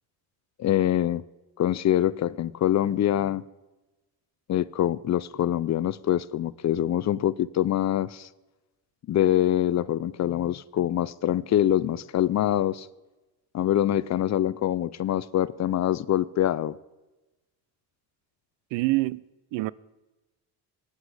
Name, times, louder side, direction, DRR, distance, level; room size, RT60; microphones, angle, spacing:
voice 1, 0.6-1.2 1.6-3.4 4.5-8.3 9.1-12.9 13.5-16.7, left 12 dB, 40° left, 0.4 m, -24 dB
voice 2, 18.7-19.2 19.5-19.7, right 20 dB, 85° right, 0.5 m, -25 dB
15.5 x 9.8 x 4.8 m
cardioid pair, 105°, 42 cm